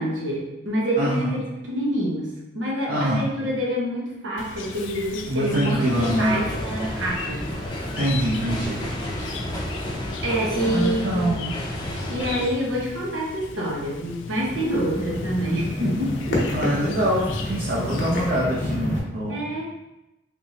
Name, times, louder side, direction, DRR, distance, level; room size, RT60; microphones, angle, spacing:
voice 1, 0.0-1.4 1.7-7.6 10.2-11.3 12.1-16.4 19.3-19.6, equal, 85° right, -3 dB, 1.0 m, -27 dB
voice 2, 1.0-1.3 2.9-3.2 5.2-6.4 8.0-8.8 10.6-11.4 16.5-19.6, equal, 55° right, -6 dB, 0.6 m, -24 dB
Chirp tweet, 4.4-18.3, left 5 dB, 90° left, 0.4 m, -39 dB
sound 1, 5.8-12.5, left 1 dB, 25° left, 0.5 m, -31 dB
sound 2, 14.4-19.0, left 1 dB, 65° left, 0.8 m, -29 dB
3.5 x 3.0 x 2.7 m, 0.97 s
head